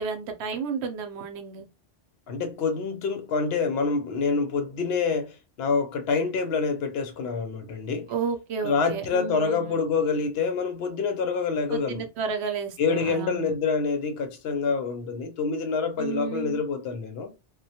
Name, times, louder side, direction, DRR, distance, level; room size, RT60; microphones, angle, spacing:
voice 1, 0.0-1.7 8.1-9.8 11.7-13.5 16.0-16.6, right 5 dB, 85° right, 0.9 m, -32 dB
voice 2, 2.3-8.1 8.6-12.0 12.8-17.3, left 5 dB, 70° left, 0.8 m, -27 dB
2.2 x 2.1 x 2.7 m
omnidirectional pair, 1.1 m